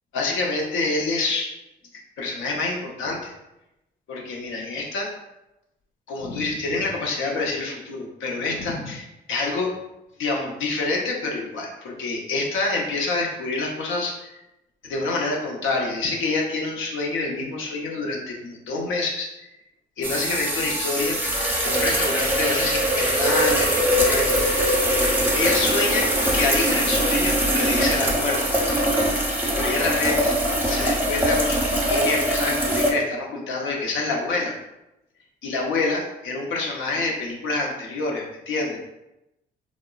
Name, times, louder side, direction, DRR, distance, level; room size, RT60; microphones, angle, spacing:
voice 1, 0.1-1.5 2.2-3.3 4.1-5.1 6.1-9.7 10.2-14.4 14.8-19.5 20.0-21.2 21.6-24.5 25.3-28.6 29.5-30.3 30.7-34.5 35.4-38.8, left 3 dB, 85° left, -1 dB, 0.7 m, -27 dB
sound 1, 20.0-32.9, equal, 10° right, 0.6 m, -22 dB
3.6 x 2.0 x 2.3 m, 0.92 s
cardioid pair, 90°, 20 cm